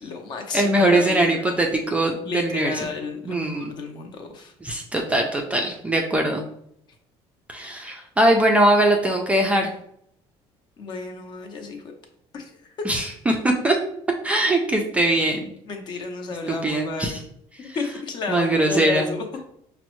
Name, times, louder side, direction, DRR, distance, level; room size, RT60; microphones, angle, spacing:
voice 1, 0.0-1.6 2.3-4.5 10.8-11.8 12.3-12.7 15.7-17.3 17.6-19.2, left 4 dB, 40° left, 4 dB, 0.6 m, -32 dB
voice 2, 0.5-2.9 3.3-3.8 4.6-6.4 7.5-9.7 12.8-13.8 14.2-15.5 16.5-17.2 17.6-17.8 18.3-19.1, right 1 dB, 10° right, 1 dB, 0.3 m, -21 dB
5.1 x 2.0 x 3.0 m, 0.71 s
cardioid pair, 160°, 11 cm